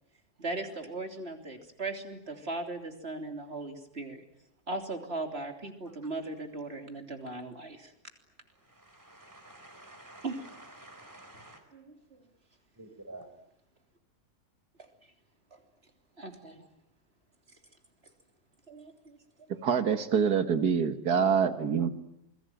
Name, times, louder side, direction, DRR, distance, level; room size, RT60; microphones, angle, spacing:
voice 1, 0.4-4.2 4.7-7.9 10.2-10.5 11.7-12.2 14.8-14.9 15.5-15.6 16.2-16.7 18.7-19.2 19.5-19.7, right 2 dB, 40° right, 5 dB, 3.5 m, -38 dB
voice 2, 8.7-11.6 12.8-13.3, right 2 dB, 10° right, 7 dB, 4.4 m, -50 dB
voice 3, 19.5-21.9, right 6 dB, 80° right, 10 dB, 2.2 m, -26 dB
28.0 x 22.0 x 9.3 m, 0.76 s
omnidirectional pair, 1.7 m